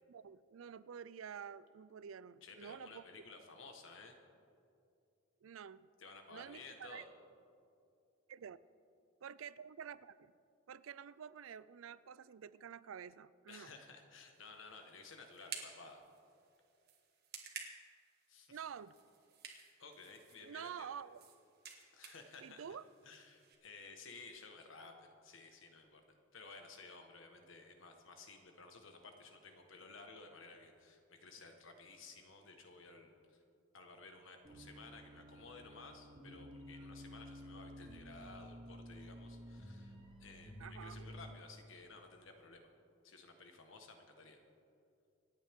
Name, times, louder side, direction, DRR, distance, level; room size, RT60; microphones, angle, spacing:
voice 1, 0.1-3.0 5.4-5.9 6.3-7.0 8.3-8.6 9.2-10.3 10.7-13.7 18.5-19.0 20.4-21.2 22.4-22.8 40.6-41.1, right 7 dB, 85° right, 17 dB, 0.4 m, -49 dB
voice 2, 2.4-4.2 6.0-7.1 13.5-16.0 18.3-18.6 19.8-20.9 21.9-22.6 23.0-33.4 33.7-42.7 43.0-44.4, left 3 dB, 70° left, 4 dB, 1.5 m, -55 dB
sound 1, 14.3-23.5, right 6 dB, 50° right, 1.7 m, -54 dB
sound 2, 34.4-41.3, equal, 25° right, 2.3 m, -52 dB
27.0 x 9.0 x 3.7 m, 2.5 s
head